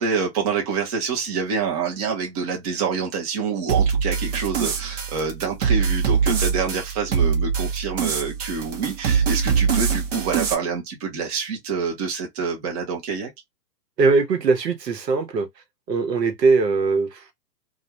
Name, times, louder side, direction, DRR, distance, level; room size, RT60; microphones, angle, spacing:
voice 1, 0.0-13.3, right 5 dB, 25° right, 0.6 m, -27 dB
sound 1, 3.7-10.5, right 6 dB, 50° right, 0.8 m, -23 dB
voice 2, 14.0-15.5 15.9-17.3, right 4 dB, 75° right, 1.0 m, -20 dB
2.4 x 2.1 x 2.7 m
hypercardioid pair, 135°, 50 cm